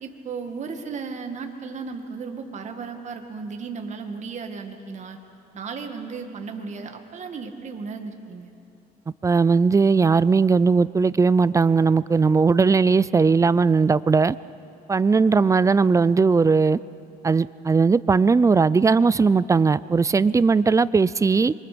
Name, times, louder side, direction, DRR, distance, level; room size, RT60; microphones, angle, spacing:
voice 1, 0.0-5.2 5.5-8.5, right 5 dB, 45° right, 5 dB, 2.0 m, -35 dB
voice 2, 9.2-14.4 14.9-16.8 17.2-21.5, right 4 dB, 20° right, 18 dB, 0.4 m, -18 dB
27.0 x 24.0 x 5.2 m, 2.7 s
cardioid pair, 110°, 17 cm